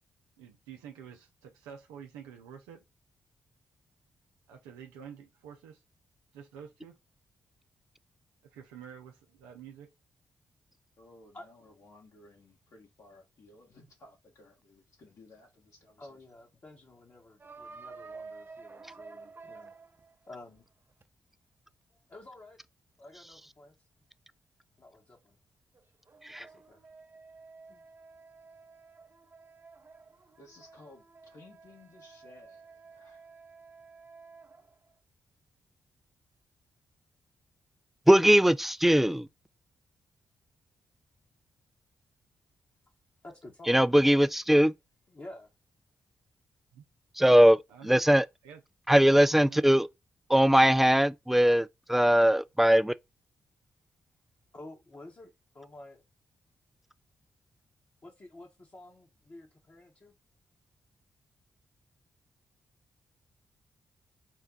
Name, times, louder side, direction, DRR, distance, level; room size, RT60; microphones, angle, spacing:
voice 1, 0.4-2.8 4.5-5.8 6.3-6.9 8.5-9.9 46.7-46.8 47.7-48.0 48.4-48.6 49.4-49.6, right 8 dB, 90° right, 0.5 m, -48 dB
voice 2, 11.0-16.2 30.4-33.3, left 2 dB, 65° left, 1.5 m, -57 dB
voice 3, 16.0-19.7 20.3-20.6 21.9-22.6 23.0-23.7 24.8-25.4 26.3-26.8 27.7-27.8 43.2-43.8 45.1-45.5 54.5-56.0 58.0-60.1, left 2 dB, 40° left, 1.2 m, -50 dB
sound 1, 17.4-21.0 25.7-34.9, right 4 dB, 35° right, 0.7 m, -51 dB
voice 4, 38.1-39.3 43.7-44.7 47.1-48.3 48.9-49.9 50.3-52.9, equal, 5° right, 0.3 m, -21 dB
4.5 x 2.2 x 3.7 m
hypercardioid pair, 40°, 6 cm